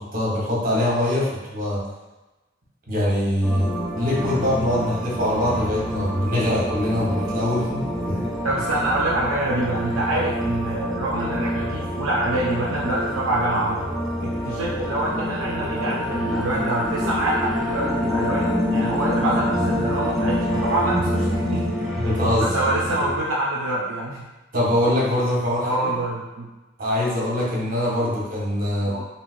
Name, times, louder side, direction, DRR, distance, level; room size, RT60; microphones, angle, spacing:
voice 1, 0.0-1.8 2.9-3.7 3.9-8.2 22.0-22.5 24.5-25.9 26.8-28.9, left 1 dB, 45° right, -6 dB, 1.0 m, -23 dB
sound 1, 3.4-23.2, equal, ahead, 0.3 m, -26 dB
voice 2, 8.4-13.8 14.2-21.8 22.4-24.3 25.6-26.5 28.8-29.0, right 1 dB, 70° right, -5 dB, 0.4 m, -26 dB
3.1 x 2.7 x 2.4 m, 1.1 s
head